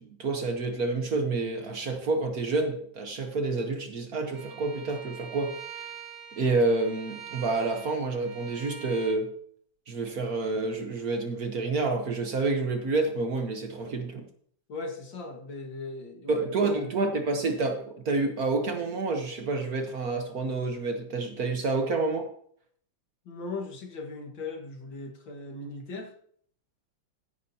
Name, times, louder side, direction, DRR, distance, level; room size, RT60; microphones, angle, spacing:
voice 1, 0.0-5.6 6.4-9.3 9.9-14.2 16.3-22.3, right 3 dB, 50° right, 1.4 m, -28 dB
Bowed string instrument, 4.3-9.2, right 7 dB, 85° right, 2.7 m, -44 dB
voice 2, 14.7-16.5 16.8-16.9 23.3-26.1, left 3 dB, 65° left, 2.3 m, -38 dB
14.5 x 10.0 x 2.8 m
omnidirectional pair, 2.2 m